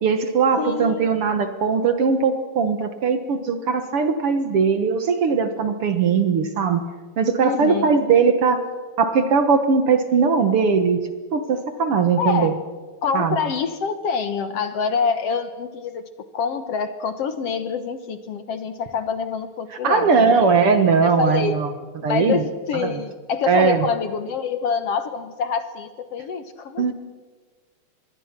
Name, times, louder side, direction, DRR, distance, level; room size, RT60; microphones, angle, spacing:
voice 1, 0.0-6.8 7.2-8.6 9.0-11.0 11.3-12.5 13.1-13.4 19.8-21.7 22.0-22.4 22.8-23.0 23.5-23.9 26.8-26.9, right 5 dB, 55° right, 9 dB, 1.9 m, -19 dB
voice 2, 0.6-1.1 7.4-7.9 12.2-12.6 13.0-16.0 16.3-20.5 21.0-21.6 22.0-26.9, left 6 dB, 60° left, 10 dB, 1.9 m, -26 dB
26.5 x 22.0 x 6.0 m, 1.4 s
omnidirectional pair, 3.5 m